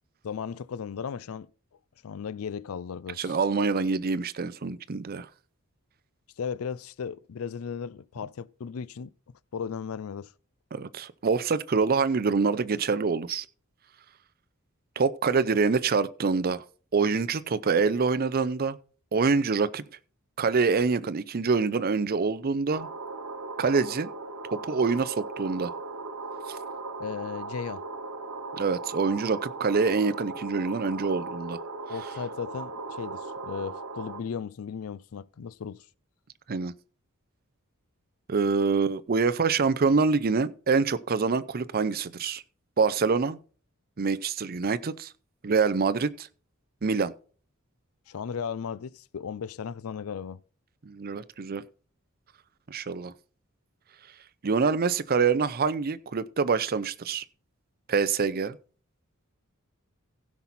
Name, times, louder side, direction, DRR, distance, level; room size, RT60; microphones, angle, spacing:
voice 1, 0.2-1.5 2.0-3.4 6.4-9.1 9.5-10.3 27.0-27.8 31.9-35.8 48.1-50.4, left 6 dB, 75° left, 0.4 m, -36 dB
voice 2, 3.2-5.3 10.7-13.5 15.0-16.6 16.9-18.8 19.1-19.8 20.4-22.9 23.6-24.1 24.5-25.7 26.5-26.6 28.5-31.6 36.5-36.7 38.3-42.4 42.8-43.4 44.0-45.1 45.4-46.3 46.8-47.1 50.8-51.6 52.7-53.1 54.4-57.2 57.9-58.6, right 4 dB, 45° right, 0.5 m, -25 dB
sound 1, 22.7-34.2, right 3 dB, 85° right, 1.2 m, -38 dB
16.0 x 5.9 x 4.1 m
head